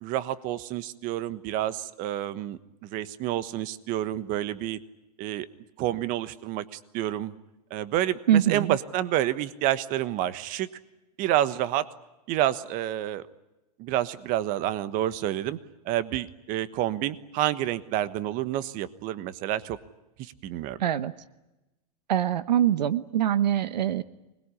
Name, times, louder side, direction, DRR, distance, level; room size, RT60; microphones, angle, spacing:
voice 1, 0.0-4.8 5.2-5.5 5.8-7.3 7.7-10.7 11.2-11.9 12.3-13.2 13.8-15.6 15.8-19.8 20.2-20.8, right 13 dB, 40° right, 14 dB, 1.3 m, -29 dB
voice 2, 8.3-8.8 20.8-21.1 22.1-24.0, right 10 dB, 85° right, 15 dB, 1.1 m, -23 dB
25.5 x 21.0 x 9.9 m, 1.0 s
hypercardioid pair, 135°, 21 cm